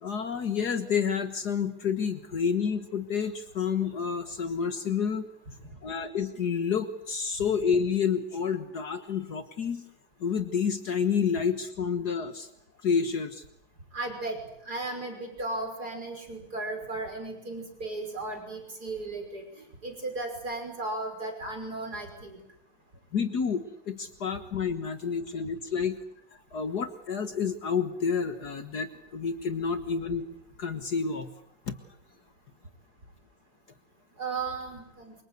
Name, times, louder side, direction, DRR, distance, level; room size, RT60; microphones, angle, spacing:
voice 1, 0.0-5.3 5.8-9.9 10.2-12.5 12.8-13.4 23.1-26.0 26.5-30.2 30.6-31.3 31.7-31.8, left 6 dB, 60° left, 9 dB, 1.9 m, -29 dB
voice 2, 13.9-14.4 14.7-22.4 34.2-35.2, right 2 dB, 55° right, 5 dB, 6.3 m, -35 dB
28.5 x 25.5 x 8.2 m, 0.73 s
omnidirectional pair, 2.0 m